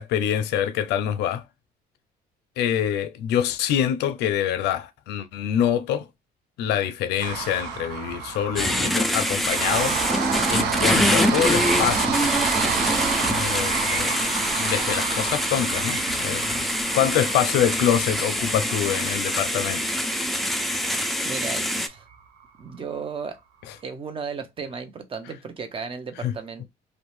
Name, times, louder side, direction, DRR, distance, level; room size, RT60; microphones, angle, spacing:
voice 1, 0.0-1.4 2.6-6.1 6.6-10.0 10.5-12.2 13.2-14.1 14.6-16.7 16.9-19.8 26.2-26.3, left 10 dB, 80° left, 0.5 m, -25 dB
sound 1, 7.2-21.3 21.7-21.8 22.1-22.2, right 7 dB, 85° right, 0.6 m, -30 dB
sound 2, 8.6-21.9, equal, ahead, 0.4 m, -25 dB
voice 2, 21.2-22.0 22.6-23.4 23.8-26.6, right 5 dB, 30° right, 0.7 m, -34 dB
2.6 x 2.1 x 3.1 m
cardioid pair, 110°, 17 cm